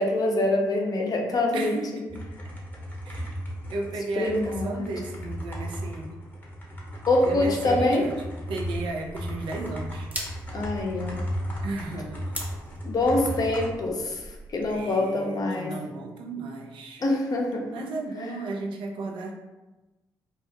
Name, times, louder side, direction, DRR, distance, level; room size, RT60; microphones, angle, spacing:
voice 1, 0.0-1.7 4.2-4.9 7.1-8.0 10.5-11.2 12.8-14.2 14.5-15.7 17.0-17.7, left 2 dB, 45° left, 1 dB, 0.6 m, -25 dB
voice 2, 1.5-2.2 3.0-3.4 3.7-6.2 7.2-10.1 11.6-12.4 14.7-17.0 17.7-19.3, right 2 dB, 65° right, 1 dB, 0.4 m, -34 dB
sound 1, 2.1-13.7, equal, 20° left, 0.9 m, -35 dB
sound 2, 8.5-14.9, right 1 dB, 20° right, 0.7 m, -43 dB
2.3 x 2.0 x 2.7 m, 1.1 s
hypercardioid pair, 45°, 9 cm